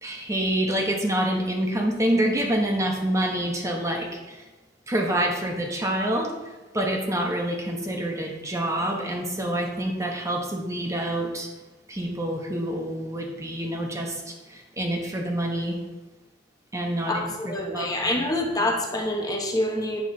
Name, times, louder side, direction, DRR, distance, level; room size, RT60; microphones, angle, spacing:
voice 1, 0.0-4.4 4.9-6.3 6.7-11.5 11.9-15.8 16.7-18.2 18.6-18.7, right 1 dB, 15° right, 1 dB, 0.9 m, -27 dB
voice 2, 17.1-20.0, left 1 dB, 20° left, 1 dB, 0.9 m, -26 dB
8.4 x 3.9 x 5.8 m, 1.1 s
head